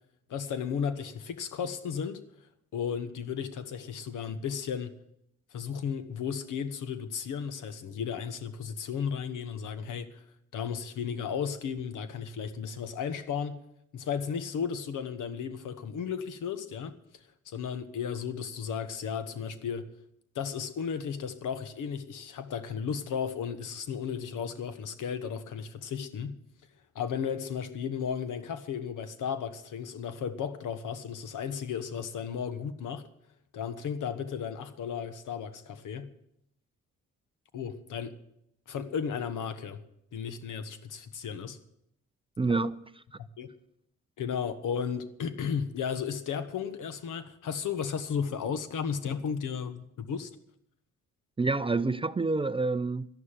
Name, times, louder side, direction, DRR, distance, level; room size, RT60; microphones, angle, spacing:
voice 1, 0.3-2.2 2.7-5.0 5.5-10.2 10.5-13.6 13.9-19.9 20.3-26.4 26.9-33.1 33.5-36.1 37.5-38.1 38.7-39.8 40.1-41.6 43.2-43.5 44.2-50.3, left 7 dB, 70° left, 1.3 m, -34 dB
voice 2, 42.4-42.8 51.4-53.1, right 3 dB, 15° right, 0.4 m, -27 dB
12.5 x 11.0 x 7.5 m
supercardioid pair, 70°, 32 cm